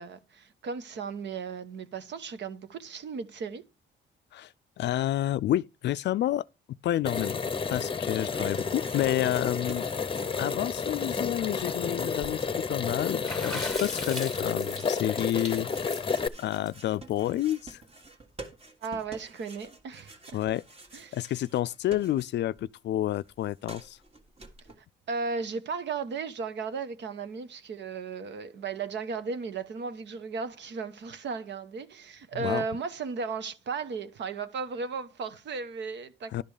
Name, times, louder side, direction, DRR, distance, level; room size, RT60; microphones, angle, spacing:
voice 1, 0.0-3.6 18.8-20.4 20.9-21.2 25.1-36.4, right 5 dB, 65° right, 1.2 m, -35 dB
voice 2, 4.3-6.4 6.8-7.4 7.7-9.9 10.4-12.4 12.7-15.9 16.4-17.8 20.3-20.6 21.1-24.0 32.3-32.6 36.3-36.4, left 13 dB, 60° left, 0.4 m, -29 dB
sound 1, 7.0-16.3, left 5 dB, 25° left, 0.8 m, -31 dB
sound 2, 8.4-9.4 9.7-22.6 22.9-24.8, right 2 dB, 30° right, 1.8 m, -50 dB
Water / Splash splatter, 13.2-17.7, left 1 dB, 5° left, 2.1 m, -39 dB
11.5 x 5.2 x 4.9 m
cardioid pair, 90°, 20 cm